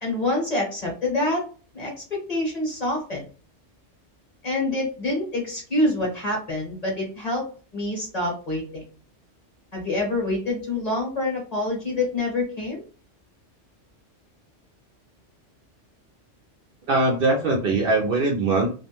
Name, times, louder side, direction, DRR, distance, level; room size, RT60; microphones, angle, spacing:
voice 1, 0.0-1.4 1.7-3.2 4.4-7.4 7.7-8.8 9.7-12.8, left 2 dB, 35° left, -2 dB, 1.0 m, -26 dB
voice 2, 16.9-18.7, right 2 dB, 60° right, 1 dB, 0.7 m, -21 dB
2.4 x 2.1 x 2.9 m, 0.40 s
omnidirectional pair, 1.2 m